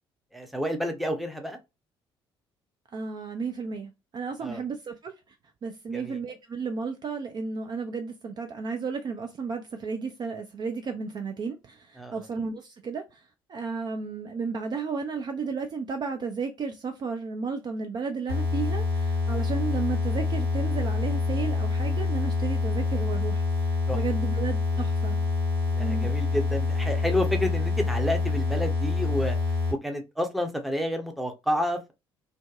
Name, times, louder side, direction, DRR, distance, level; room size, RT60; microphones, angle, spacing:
voice 1, 0.3-1.6 4.4-4.6 5.9-6.2 12.0-12.3 23.9-24.0 25.7-29.4 29.8-31.9, left 1 dB, ahead, 0.7 m, -30 dB
voice 2, 2.9-5.4 5.6-25.2 25.8-26.1, right 5 dB, 35° right, 0.4 m, -33 dB
sound 1, 18.3-29.7, left 3 dB, 80° right, 1.3 m, -26 dB
2.6 x 2.1 x 2.3 m
figure-of-eight pair, 50°, 13 cm